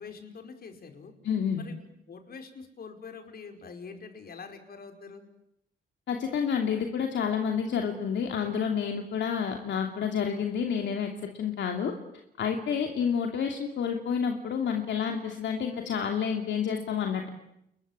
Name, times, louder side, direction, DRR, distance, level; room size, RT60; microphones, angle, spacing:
voice 1, 0.0-1.1 1.6-5.2, left 5 dB, 50° left, 5 dB, 5.3 m, -45 dB
voice 2, 1.2-1.6 6.1-11.9 12.4-17.3, left 7 dB, 65° left, 3 dB, 2.9 m, -29 dB
29.0 x 22.5 x 9.0 m, 0.79 s
cardioid pair, 90°, 20 cm